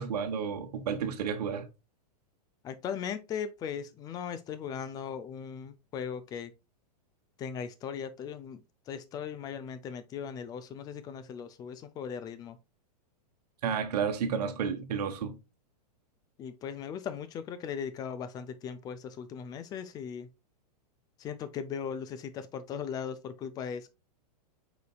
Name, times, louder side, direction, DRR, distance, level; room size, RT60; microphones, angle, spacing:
voice 1, 0.0-1.7 13.6-15.4, right 6 dB, 70° right, 1.1 m, -31 dB
voice 2, 2.6-6.5 7.4-12.6 16.4-20.3 21.2-23.9, left 7 dB, 20° left, 0.4 m, -38 dB
5.0 x 4.0 x 2.3 m
hypercardioid pair, 140°, 21 cm